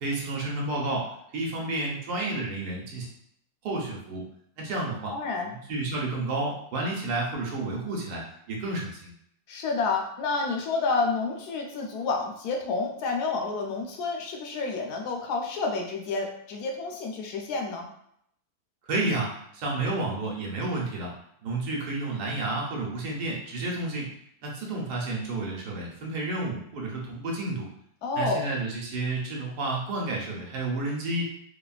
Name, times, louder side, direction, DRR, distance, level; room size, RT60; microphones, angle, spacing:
voice 1, 0.0-1.1 1.3-3.1 3.6-4.2 4.6-5.1 5.4-9.1 18.9-21.1 21.4-24.1 24.4-27.7 28.2-31.2, right 2 dB, 85° right, -2 dB, 1.3 m, -31 dB
voice 2, 5.1-5.5 9.5-17.8 28.0-28.5, left 3 dB, 85° left, 1 dB, 1.1 m, -29 dB
3.2 x 2.2 x 2.4 m, 0.71 s
omnidirectional pair, 1.6 m